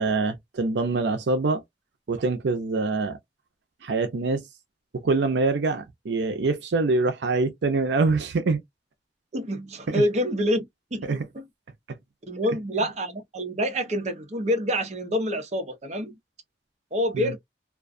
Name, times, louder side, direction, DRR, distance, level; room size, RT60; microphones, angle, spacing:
voice 1, 0.0-1.6 2.1-3.2 3.8-4.4 5.0-8.6 9.9-10.0 11.0-11.2 17.1-17.3, right 3 dB, 75° right, 0.5 m, -24 dB
voice 2, 9.3-11.5 12.3-16.2 16.9-17.4, equal, 40° right, 0.7 m, -27 dB
2.4 x 2.3 x 2.4 m
head